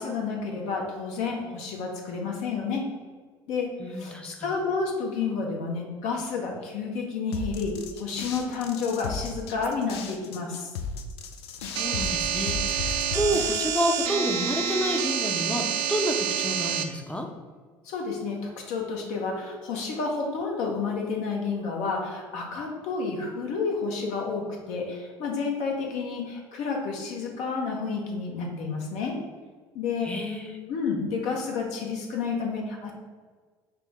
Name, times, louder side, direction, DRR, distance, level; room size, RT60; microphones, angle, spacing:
voice 1, 0.0-2.8 3.5-10.7 17.8-29.2 29.7-30.1 30.7-32.9, left 4 dB, 55° left, 0 dB, 0.8 m, -30 dB
voice 2, 3.8-4.5 11.6-17.3 30.0-30.6, equal, 10° left, 3 dB, 0.6 m, -29 dB
sound 1, 7.3-14.1, left 5 dB, 75° left, 0.4 m, -35 dB
sound 2, 11.8-16.8, right 7 dB, 60° right, 0.4 m, -28 dB
5.7 x 2.1 x 3.5 m, 1.5 s
figure-of-eight pair, 60°, 14 cm